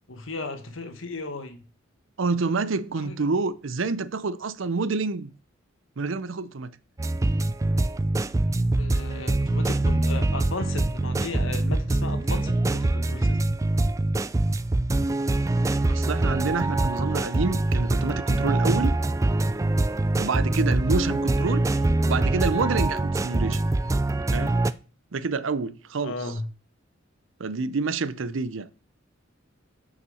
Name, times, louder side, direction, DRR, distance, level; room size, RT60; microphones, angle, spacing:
voice 1, 0.1-1.6 3.0-3.2 8.8-13.4 26.0-26.5, left 3 dB, 85° left, 1.4 m, -35 dB
voice 2, 2.2-5.3 6.0-6.8 15.8-18.9 20.2-21.7 22.0-23.6 24.3-24.6 25.1-26.1 27.4-28.7, right 4 dB, 75° right, 0.6 m, -28 dB
sound 1, 7.0-24.7, right 2 dB, 15° right, 0.3 m, -24 dB
6.6 x 5.8 x 7.0 m
head